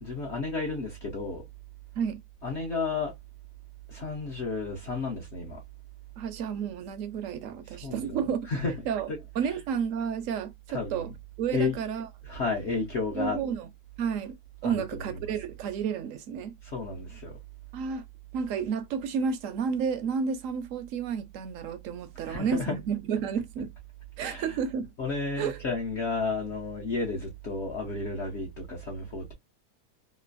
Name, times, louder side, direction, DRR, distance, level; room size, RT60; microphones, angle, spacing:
voice 1, 0.0-1.4 2.4-3.1 3.9-5.6 7.6-9.6 10.7-11.1 11.5-11.8 12.2-13.4 14.6-15.4 16.6-17.4 22.2-22.8 24.2-24.6 25.0-29.3, left 3 dB, 55° left, 0.9 m, -32 dB
voice 2, 6.2-8.4 8.9-9.1 9.4-11.1 11.4-12.1 13.1-13.7 14.0-14.4 14.6-16.5 17.7-18.0 18.3-23.7 24.2-24.9 25.4-25.6, right 6 dB, 70° right, 0.9 m, -31 dB
3.0 x 2.4 x 2.5 m
omnidirectional pair, 1.6 m